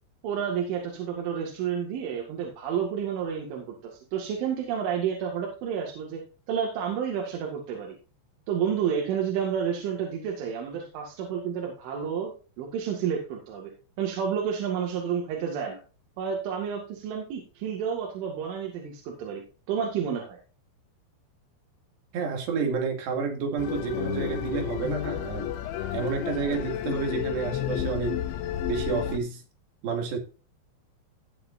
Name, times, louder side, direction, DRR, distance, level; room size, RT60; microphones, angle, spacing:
voice 1, 0.2-6.2 6.5-8.0 8.5-13.7 14.0-15.8 16.2-19.4 19.7-20.4, right 7 dB, 80° right, 4.4 m, -30 dB
voice 2, 22.1-25.5 25.9-28.3 28.7-29.4 29.8-30.2, right 5 dB, 65° right, 4.4 m, -30 dB
sound 1, 23.6-29.2, left 11 dB, 80° left, 3.1 m, -31 dB
16.0 x 7.9 x 2.6 m
omnidirectional pair, 5.5 m